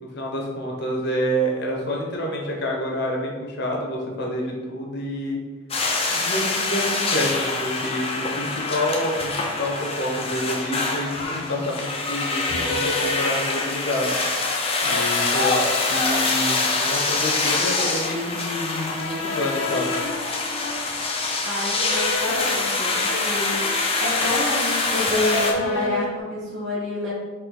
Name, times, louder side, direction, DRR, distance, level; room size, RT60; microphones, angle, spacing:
voice 1, 0.1-5.4 6.1-14.1 14.8-20.0, equal, 50° left, -1 dB, 0.9 m, -28 dB
sound 1, 5.7-25.5, left 3 dB, 25° left, 0.5 m, -25 dB
sound 2, 10.1-10.3 11.1-11.7 12.5-13.9 14.7-15.9 16.4-18.0 18.8-21.2 21.7-24.0 24.3-25.0 25.3-26.2, left 2 dB, 70° left, 0.6 m, -32 dB
voice 2, 21.4-27.1, left 2 dB, 55° right, -8 dB, 1.3 m, -28 dB
4.6 x 3.1 x 3.8 m, 1.3 s
head